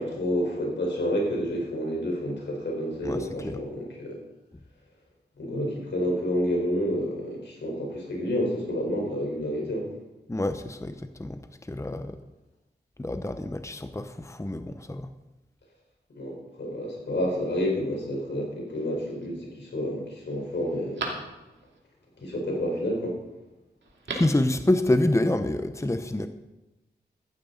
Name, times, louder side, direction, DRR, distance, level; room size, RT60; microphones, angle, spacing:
voice 1, 0.0-4.2 5.4-9.9 16.1-21.1 22.2-23.2, equal, 85° left, 0 dB, 4.5 m, -29 dB
voice 2, 3.0-3.6 10.3-11.4 11.7-12.2 13.0-15.1 24.1-26.3, left 1 dB, 15° left, 9 dB, 0.9 m, -27 dB
Telephone, 18.7-19.3 19.8-19.9 20.3-21.8 23.8-24.5 24.7-24.8, right 3 dB, 90° right, 2.5 m, -38 dB
15.5 x 12.0 x 4.0 m, 1.0 s
cardioid pair, 50°, 18 cm